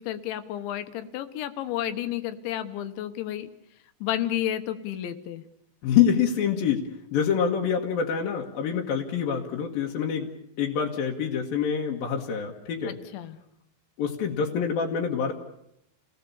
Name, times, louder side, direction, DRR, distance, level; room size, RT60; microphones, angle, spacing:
voice 1, 0.0-3.5 4.0-5.4 12.9-13.4, left 12 dB, 80° left, 9 dB, 3.4 m, -31 dB
voice 2, 5.8-10.3 10.6-13.0 14.0-15.3, left 7 dB, 60° left, -1 dB, 2.8 m, -26 dB
29.0 x 18.0 x 7.1 m, 0.81 s
omnidirectional pair, 5.4 m